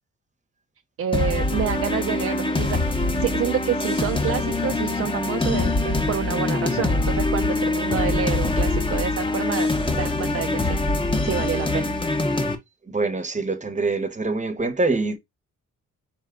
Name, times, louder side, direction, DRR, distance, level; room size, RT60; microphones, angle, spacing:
voice 1, 1.0-9.7 10.0-10.8 11.2-12.0, right 8 dB, 45° right, 0.5 m, -28 dB
sound 1, 1.1-12.6, left 2 dB, 15° left, 0.8 m, -24 dB
voice 2, 12.9-15.2, right 3 dB, 25° right, 0.8 m, -24 dB
4.2 x 2.2 x 3.6 m
cardioid pair, 80°, 32 cm